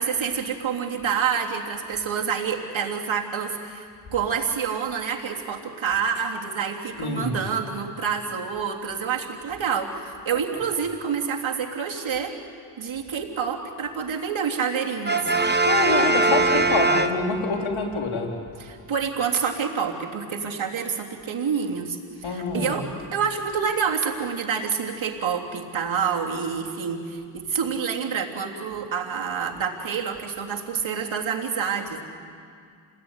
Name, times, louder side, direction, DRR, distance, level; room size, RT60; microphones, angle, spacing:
voice 1, 0.0-12.3 12.8-15.3 18.7-22.8 23.1-32.0, right 6 dB, 70° right, 1 dB, 3.3 m, -27 dB
voice 2, 7.0-7.4 10.3-10.4 15.6-18.4 22.2-22.9, left 4 dB, 85° left, 1 dB, 3.5 m, -26 dB
Brass instrument, 15.0-17.7, right 2 dB, 20° right, 1.7 m, -21 dB
29.0 x 20.0 x 9.8 m, 2.3 s
cardioid pair, 50°, 48 cm